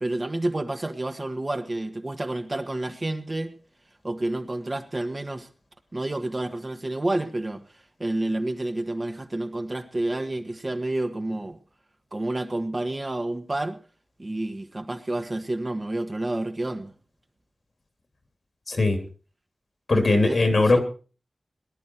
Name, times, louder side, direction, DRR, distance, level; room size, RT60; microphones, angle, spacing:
voice 1, 0.0-3.5 4.0-5.5 5.9-7.6 8.0-11.6 12.1-13.8 14.2-16.9 19.9-20.8, right 1 dB, 35° right, 6 dB, 1.5 m, -29 dB
voice 2, 18.7-19.0 19.9-20.8, left 2 dB, 65° left, 5 dB, 3.0 m, -20 dB
18.5 x 11.0 x 4.6 m, 0.38 s
wide cardioid pair, 90°, 0 cm